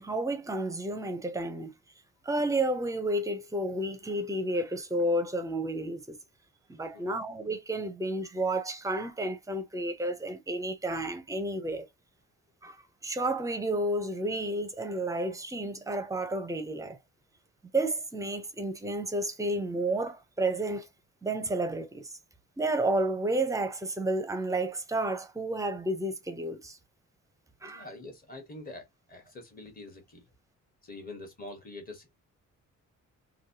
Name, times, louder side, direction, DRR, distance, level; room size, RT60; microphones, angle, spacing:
voice 1, 0.0-1.7 2.2-6.2 6.7-11.9 12.6-12.8 13.0-17.0 17.7-20.9 21.2-22.1 22.6-26.8 27.6-27.8, right 1 dB, 10° right, 0.6 m, -31 dB
voice 2, 27.6-30.2 30.8-32.1, left 2 dB, 30° left, 1.3 m, -45 dB
3.2 x 2.7 x 2.7 m
cardioid pair, 170°, 31 cm